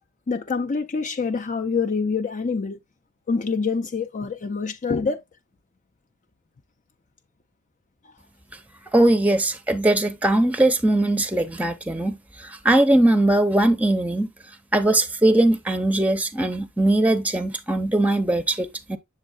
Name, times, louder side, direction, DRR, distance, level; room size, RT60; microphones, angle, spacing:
voice 1, 0.3-2.8 3.3-5.2, left 4 dB, 35° left, 0.5 m, -26 dB
voice 2, 8.9-14.3 14.7-19.0, right 1 dB, 5° right, 0.7 m, -20 dB
7.5 x 7.2 x 2.2 m
head